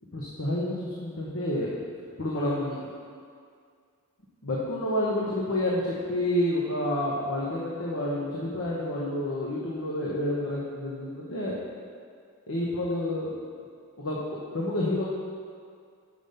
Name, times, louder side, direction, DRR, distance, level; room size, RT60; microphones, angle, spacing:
voice 1, 0.1-1.8 2.2-2.8 4.4-11.5 12.5-13.3 14.0-15.0, left 1 dB, 60° left, -5 dB, 1.0 m, -29 dB
6.0 x 5.1 x 6.7 m, 2.1 s
head